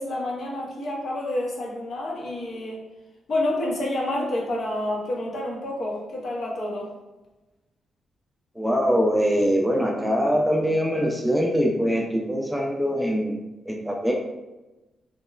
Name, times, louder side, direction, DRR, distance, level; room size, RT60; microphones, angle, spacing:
voice 1, 0.0-2.8 3.3-6.9, left 1 dB, 60° left, -2 dB, 0.7 m, -28 dB
voice 2, 8.6-13.4 13.7-14.1, equal, 5° right, -1 dB, 0.4 m, -23 dB
2.8 x 2.1 x 2.3 m, 1.1 s
cardioid pair, 80°, 0 cm